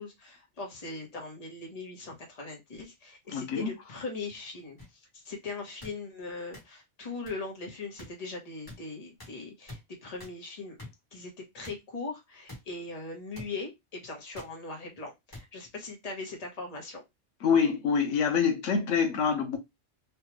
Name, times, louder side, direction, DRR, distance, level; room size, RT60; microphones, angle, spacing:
voice 1, 0.0-10.8 11.1-17.0, left 3 dB, 35° left, 1.0 m, -40 dB
voice 2, 3.3-3.7 17.4-19.6, left 6 dB, 90° left, 1.1 m, -26 dB
sound 1, 4.8-4.9 5.8-5.9 6.5-6.6 7.3-7.4 8.0-8.1 8.7-8.8 9.2-9.3 9.7-9.8 10.2-10.3 10.8-10.9 11.6-11.8 12.5-12.6 13.3-13.5 14.3-14.5 15.3-15.4 16.3-16.4, left 1 dB, 20° left, 1.2 m, -45 dB
3.3 x 2.3 x 2.9 m
omnidirectional pair, 1.2 m